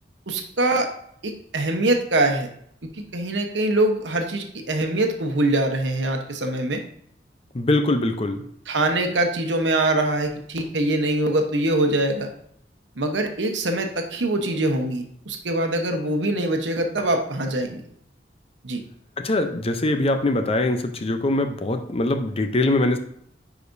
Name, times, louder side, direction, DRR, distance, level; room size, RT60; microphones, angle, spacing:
voice 1, 0.3-0.9 1.2-2.5 2.8-6.8 8.7-12.3 13.0-17.8 18.6-18.8, right 1 dB, 85° right, 4 dB, 1.0 m, -23 dB
voice 2, 7.5-8.4 19.2-23.0, left 2 dB, 35° left, 7 dB, 0.6 m, -22 dB
9.6 x 5.0 x 2.6 m, 0.68 s
head